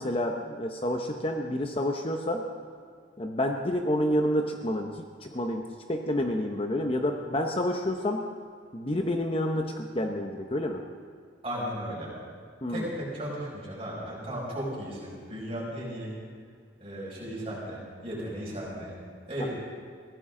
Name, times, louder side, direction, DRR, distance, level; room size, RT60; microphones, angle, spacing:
voice 1, 0.0-2.4 3.2-5.6 5.9-8.2 8.7-10.8 12.6-12.8 19.4-19.5, left 1 dB, 30° left, 3 dB, 0.8 m, -29 dB
voice 2, 11.4-12.1 12.7-16.1 16.8-18.9 19.3-19.5, equal, 30° right, -5 dB, 6.0 m, -35 dB
23.0 x 16.5 x 3.8 m, 2.1 s
head